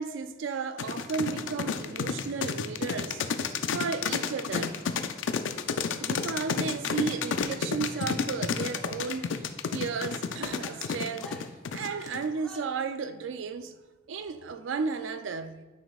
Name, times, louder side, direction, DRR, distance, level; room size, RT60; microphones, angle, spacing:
voice 1, 0.0-3.2 3.7-4.9 6.0-11.3 11.7-13.8 14.1-15.6, right 5 dB, 85° right, 0.4 m, -34 dB
sound 1, 0.8-12.3, left 6 dB, 85° left, 0.4 m, -30 dB
sound 2, 1.2-10.8, right 1 dB, 60° right, 0.8 m, -53 dB
Female speech woman speaking / Yell, 7.8-8.3 8.5-9.4 10.0-12.9, equal, 5° left, 0.7 m, -50 dB
9.0 x 5.2 x 2.4 m
head